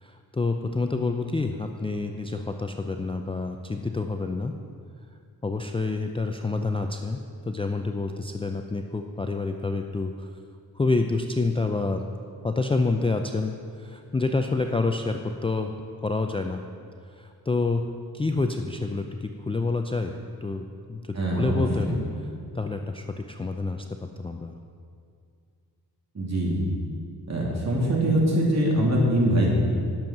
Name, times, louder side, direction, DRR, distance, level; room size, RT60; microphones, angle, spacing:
voice 1, 0.0-4.5 5.4-7.2 7.5-10.3 10.8-12.0 12.4-15.7 16.0-16.6 17.2-17.9 18.1-20.1 20.4-22.0 22.5-24.5, left 3 dB, 15° left, 4 dB, 0.4 m, -28 dB
voice 2, 21.1-22.0 26.1-26.6 27.3-29.5, right 1 dB, 45° right, -3 dB, 2.7 m, -23 dB
10.5 x 7.2 x 6.0 m, 2.3 s
cardioid pair, 90°, 38 cm